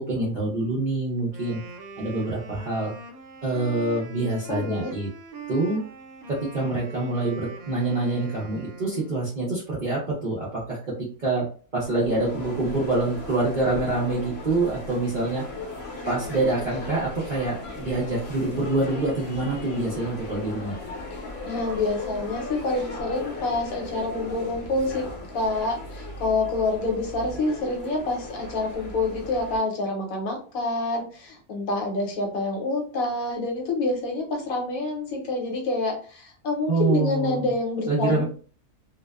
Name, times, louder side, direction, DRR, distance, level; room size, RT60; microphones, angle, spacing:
voice 1, 0.0-1.6 2.0-2.9 3.4-5.1 5.5-5.8 6.3-15.4 16.1-20.7 36.7-37.5 37.9-38.2, right 2 dB, 50° right, -6 dB, 0.5 m, -26 dB
Wind instrument woodwind instrument, 1.2-9.3, right 5 dB, 75° right, 1.0 m, -42 dB
voice 2, 4.2-4.9 21.4-25.0 25.3-38.2, left 2 dB, 70° left, 1 dB, 1.1 m, -27 dB
sound 1, 11.8-29.6, left 2 dB, 50° left, 0.9 m, -37 dB
2.6 x 2.1 x 2.3 m, 0.40 s
omnidirectional pair, 1.6 m